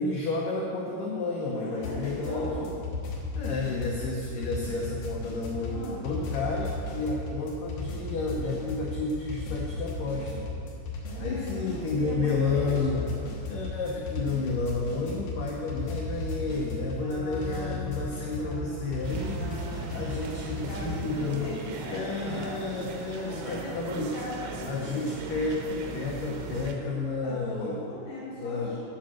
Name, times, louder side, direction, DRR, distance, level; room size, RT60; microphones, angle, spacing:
voice 1, 0.0-2.7 3.3-10.5 11.2-13.0 13.5-19.4 19.9-21.5 21.9-24.1 24.6-27.8 28.4-28.8, left 3 dB, 85° left, -3 dB, 1.8 m, -31 dB
voice 2, 1.5-2.7 5.7-6.0 11.0-13.1 16.1-16.3 17.0-22.6 23.2-25.1 27.2-28.8, left 1 dB, 40° left, -7 dB, 2.5 m, -40 dB
sound 1, 1.8-21.1, left 2 dB, 70° left, 1.7 m, -35 dB
sound 2, 19.0-26.7, right 4 dB, 85° right, 2.9 m, -39 dB
8.6 x 5.0 x 7.1 m, 2.6 s
omnidirectional pair, 5.0 m